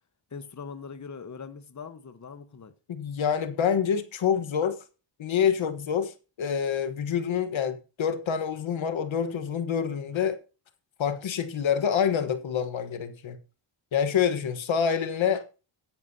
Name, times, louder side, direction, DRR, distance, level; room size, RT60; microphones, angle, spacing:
voice 1, 0.3-2.7, left 5 dB, 35° left, 1.2 m, -41 dB
voice 2, 2.9-4.7 5.2-10.4 11.0-13.4 13.9-15.4, left 7 dB, 70° left, 1.4 m, -27 dB
15.0 x 10.5 x 2.8 m
cardioid pair, 85°, 48 cm